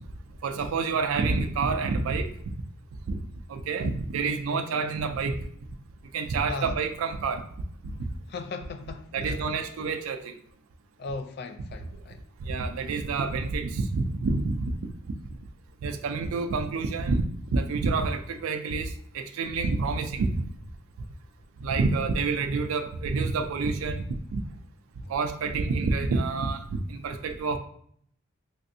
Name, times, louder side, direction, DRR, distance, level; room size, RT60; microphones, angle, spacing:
voice 1, 0.4-2.3 3.1-3.2 3.5-5.4 6.1-7.4 7.8-7.9 9.1-10.4 12.4-14.7 15.8-17.3 17.5-20.4 21.6-24.4 25.1-27.6, right 4 dB, 75° right, 0.4 m, -28 dB
voice 2, 8.3-9.4 11.0-12.2, left 4 dB, 50° left, 0.3 m, -37 dB
3.2 x 2.5 x 2.6 m
head